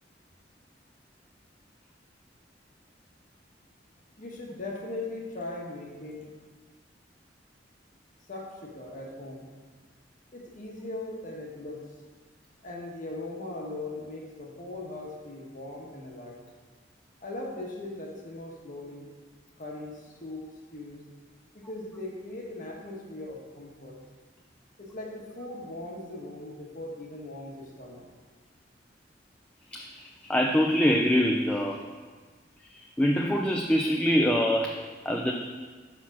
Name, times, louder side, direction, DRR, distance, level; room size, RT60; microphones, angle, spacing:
voice 1, 4.2-6.3 8.3-9.5 10.3-11.8 12.6-16.4 17.2-19.1 19.6-20.4 20.7-21.0 21.5-24.0 24.8-28.0, left 2 dB, 50° left, -1 dB, 1.1 m, -39 dB
voice 2, 29.7-31.8 32.7-34.7 35.0-35.3, equal, 5° left, 0 dB, 0.4 m, -24 dB
5.7 x 4.6 x 5.9 m, 1.5 s
head